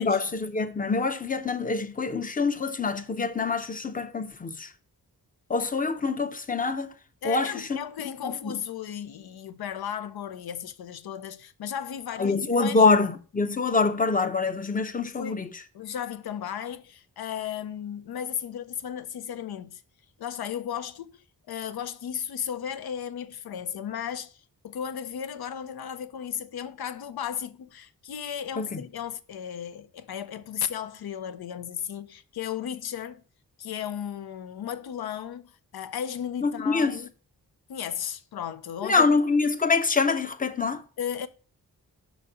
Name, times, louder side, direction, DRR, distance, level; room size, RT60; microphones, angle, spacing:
voice 1, 0.0-4.7 5.5-6.9 7.2-7.8 8.2-8.5 12.2-15.6 28.6-28.8 36.4-37.0 38.8-40.8, left 4 dB, 20° left, 0.6 m, -25 dB
voice 2, 7.2-12.9 15.2-15.4 15.7-19.8 20.2-33.2 33.6-37.1 37.7-39.2 41.0-41.3, left 9 dB, 80° left, 0.6 m, -35 dB
5.8 x 4.1 x 4.8 m
cardioid pair, 70°, 37 cm